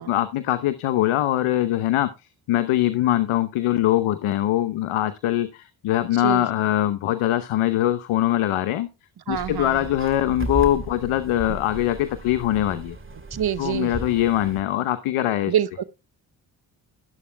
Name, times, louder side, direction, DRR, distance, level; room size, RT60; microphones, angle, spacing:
voice 1, 0.0-2.1 2.5-8.9 9.3-13.0 13.6-15.5, left 13 dB, 75° left, 0.9 m, -22 dB
sound 1, 9.3-14.6, right 2 dB, 25° right, 2.1 m, -35 dB
voice 2, 9.3-9.8 13.3-13.9 15.5-15.8, right 10 dB, 50° right, 0.9 m, -25 dB
13.0 x 11.5 x 2.2 m
hypercardioid pair, 40°, 50 cm